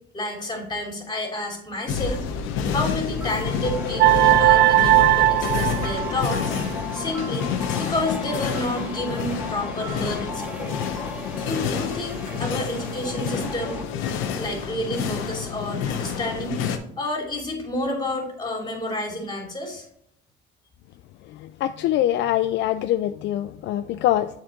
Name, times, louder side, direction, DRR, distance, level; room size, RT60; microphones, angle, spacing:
voice 1, 0.1-2.2 2.7-6.4 6.9-7.5 7.8-10.7 11.4-13.8 14.3-16.6 17.0-19.9, left 1 dB, 20° left, 1 dB, 2.9 m, -30 dB
sound 1, 1.9-16.8, left 7 dB, 80° left, 0.9 m, -28 dB
sound 2, 3.2-13.8, left 1 dB, 5° right, 1.1 m, -37 dB
sound 3, 4.0-6.6, right 16 dB, 55° right, 0.4 m, -18 dB
voice 2, 21.6-24.3, left 12 dB, 65° left, 11 dB, 0.4 m, -23 dB
7.6 x 4.5 x 3.8 m, 0.72 s
supercardioid pair, 90°, 20 cm